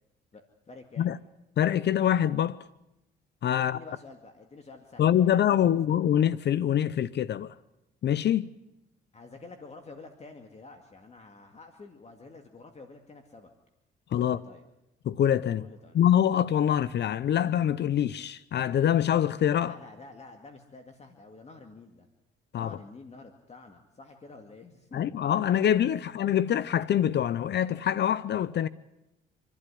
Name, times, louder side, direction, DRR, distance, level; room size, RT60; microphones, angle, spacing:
voice 1, 0.3-1.1 3.5-5.9 9.1-13.5 14.2-14.6 15.6-16.0 19.6-22.1 22.6-25.1, left 3 dB, 35° left, 2.2 m, -49 dB
voice 2, 1.6-2.6 3.4-3.8 5.0-7.5 8.0-8.5 14.1-14.4 15.0-15.6 15.9-19.7 22.5-22.7 24.9-28.7, left 10 dB, 60° left, 0.7 m, -25 dB
27.0 x 12.0 x 10.0 m
cardioid pair, 90°, 20 cm